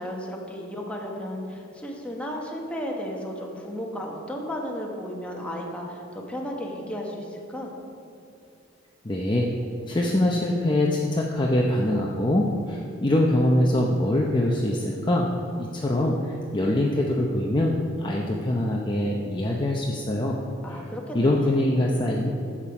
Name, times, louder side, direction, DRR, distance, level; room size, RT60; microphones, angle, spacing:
voice 1, 0.0-7.7 20.6-21.6, equal, 5° left, -1 dB, 1.3 m, -34 dB
voice 2, 9.0-9.5 9.9-15.3 15.5-20.4 20.7-20.8 21.1-22.3, left 1 dB, 25° left, -1 dB, 0.7 m, -23 dB
11.0 x 7.5 x 4.9 m, 2.5 s
head